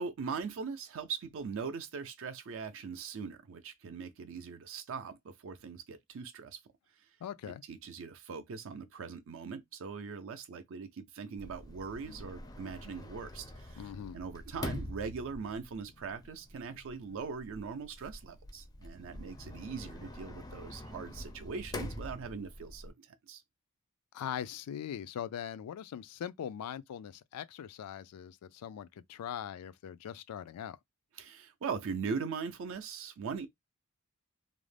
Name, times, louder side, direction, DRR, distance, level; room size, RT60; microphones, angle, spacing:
voice 1, 0.0-6.6 7.7-13.8 14.1-23.4 31.2-33.5, right 5 dB, 60° right, 0.4 m, -41 dB
voice 2, 7.2-7.6 13.8-14.2 24.1-30.8, left 9 dB, 90° left, 0.3 m, -41 dB
Sliding door, 11.4-22.9, left 1 dB, 15° left, 0.4 m, -45 dB
2.5 x 2.0 x 3.2 m
head